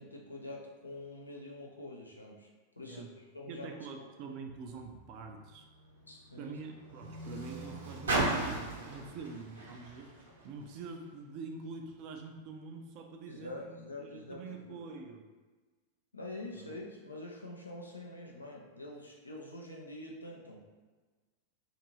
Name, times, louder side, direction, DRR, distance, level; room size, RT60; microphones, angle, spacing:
voice 1, 0.0-2.5 2.8-4.4 6.1-6.6 13.3-14.8 16.1-20.7, left 1 dB, 80° left, -1 dB, 0.5 m, -46 dB
voice 2, 3.5-5.7 6.3-15.3 16.5-16.8, right 4 dB, 40° right, 3 dB, 0.4 m, -45 dB
Car, 4.5-11.1 11.9-12.0, right 2 dB, 70° right, 0.7 m, -38 dB
2.6 x 2.5 x 3.0 m, 1.3 s
figure-of-eight pair, 90°, 0 cm